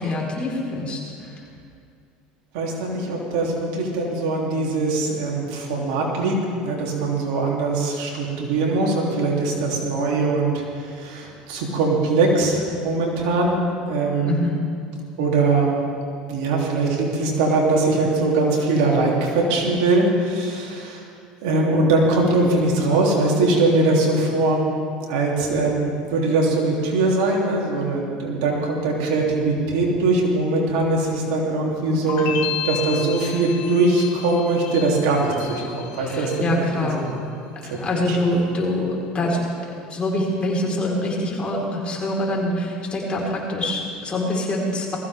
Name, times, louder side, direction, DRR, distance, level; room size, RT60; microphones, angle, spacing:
voice 1, 0.0-1.5 14.3-14.6 32.2-32.5 36.0-37.1 37.6-39.4 39.9-45.0, left 1 dB, 30° left, -3 dB, 4.5 m, -25 dB
voice 2, 2.5-6.4 6.6-14.4 15.2-15.8 16.3-21.0 21.4-24.6 25.1-32.3 32.6-37.2 37.7-37.8 38.1-38.2, right 2 dB, 80° right, -2 dB, 3.2 m, -21 dB
sound 1, 32.1-37.1 37.4-38.1, left 8 dB, 65° left, 2.0 m, -33 dB
20.5 x 15.0 x 3.6 m, 2.3 s
supercardioid pair, 95°, 4 cm